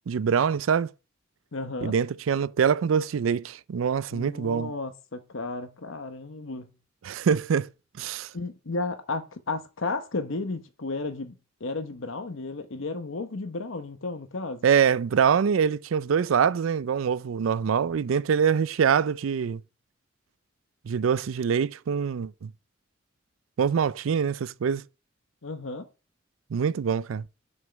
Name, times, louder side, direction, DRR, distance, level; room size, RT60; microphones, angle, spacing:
voice 1, 0.1-0.9 1.8-4.7 7.0-7.7 8.0-8.3 14.6-19.6 20.8-22.5 23.6-24.8 26.5-27.2, right 7 dB, 85° right, 0.4 m, -24 dB
voice 2, 1.5-2.0 4.1-6.7 8.3-11.3 11.6-14.7 25.4-25.9, left 3 dB, 80° left, 0.9 m, -33 dB
6.4 x 5.3 x 7.0 m
head